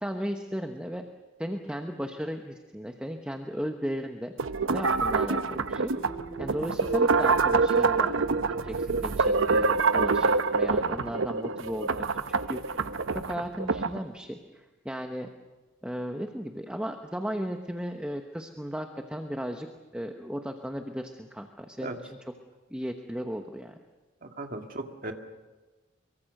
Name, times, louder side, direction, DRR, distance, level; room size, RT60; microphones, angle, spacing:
voice 1, 0.0-1.0 1.4-4.3 4.7-5.9 6.4-15.3 15.8-19.7 19.9-22.3 22.7-23.8, equal, 5° right, 4 dB, 1.0 m, -36 dB
sound 1, 4.4-14.0, right 4 dB, 85° right, 0.8 m, -26 dB
sound 2, 5.9-14.4, right 4 dB, 20° left, 4.1 m, -48 dB
voice 2, 24.2-25.1, right 2 dB, 45° right, 4 dB, 2.0 m, -37 dB
23.5 x 23.5 x 6.6 m, 1.2 s
head